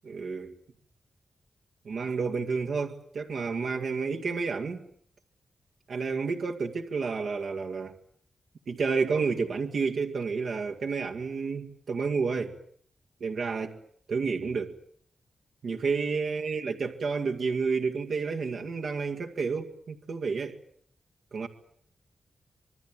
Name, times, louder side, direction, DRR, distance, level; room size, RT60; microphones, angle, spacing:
voice 1, 0.0-0.5 1.9-4.8 5.9-8.0 8.7-12.6 13.2-13.8 14.1-14.7 15.6-20.6 21.3-21.5, right 4 dB, 65° right, 2.1 m, -30 dB
26.5 x 21.5 x 9.0 m
wide cardioid pair, 165°, 0 cm